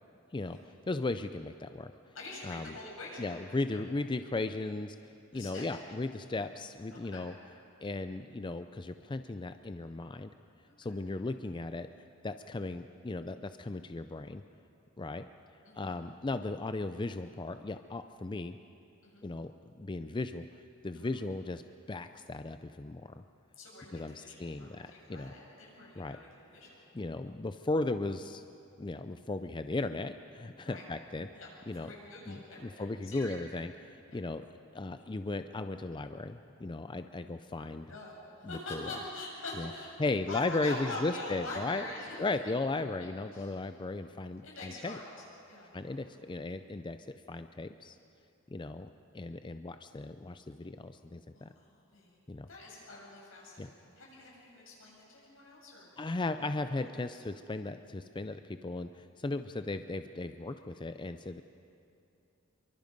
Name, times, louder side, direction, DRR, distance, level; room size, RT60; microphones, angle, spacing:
voice 1, 0.3-1.9 2.4-2.7 3.2-7.3 7.8-10.3 10.8-11.9 12.2-14.4 15.0-15.3 15.7-18.6 19.2-19.5 19.8-20.5 20.8-21.6 21.9-23.2 23.9-25.3 26.0-26.2 26.9-28.4 28.8-31.3 31.7-31.9 32.3-34.5 34.7-37.9 38.4-38.9 39.6-39.7 40.0-41.8 42.2-45.0 45.7-47.0 47.3-48.0 48.5-48.9 49.1-51.5 52.3-52.5 53.6-53.7 56.0-61.4, left 2 dB, 25° left, 9 dB, 0.5 m, -36 dB
voice 2, 2.1-3.4 3.6-3.9 5.3-6.0 6.9-7.3 10.7-11.0 15.6-15.9 19.0-19.2 20.9-21.1 23.6-26.8 30.6-30.9 31.3-33.4 34.1-34.2 37.6-42.2 43.0-43.5 44.4-46.1 51.3-52.2 52.5-56.1 56.4-56.5 56.8-57.1, left 2 dB, 80° left, -4 dB, 7.4 m, -45 dB
26.5 x 23.5 x 5.3 m, 2.7 s
head